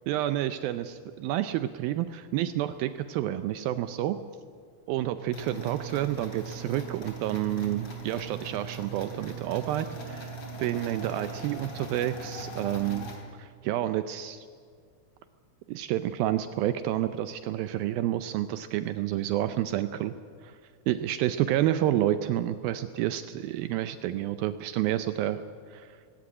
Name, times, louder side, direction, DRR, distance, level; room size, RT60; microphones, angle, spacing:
voice 1, 0.1-4.2 4.9-13.1 13.4-14.5 15.7-20.2 20.4-20.6 20.9-25.4 25.7-25.9, right 13 dB, 80° right, 11 dB, 2.3 m, -29 dB
sound 1, 5.3-13.2, right 3 dB, 35° left, 3.4 m, -40 dB
19.5 x 17.5 x 9.7 m, 2.1 s
omnidirectional pair, 4.5 m